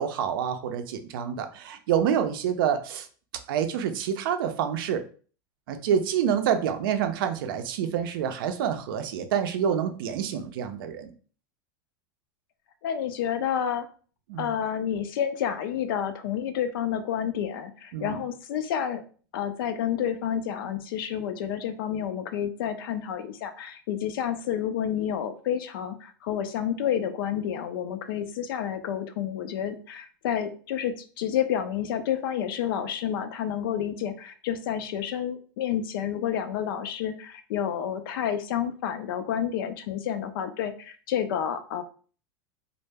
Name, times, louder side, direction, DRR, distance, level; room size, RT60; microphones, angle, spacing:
voice 1, 0.0-3.1 3.5-5.0 5.7-11.1 14.3-14.5 17.9-18.2, right 8 dB, 75° right, 8 dB, 0.4 m, -27 dB
voice 2, 12.8-13.9 14.4-19.0 19.3-41.8, left 9 dB, 75° left, 9 dB, 0.4 m, -29 dB
2.1 x 2.0 x 3.3 m, 0.41 s
supercardioid pair, 130°, 12 cm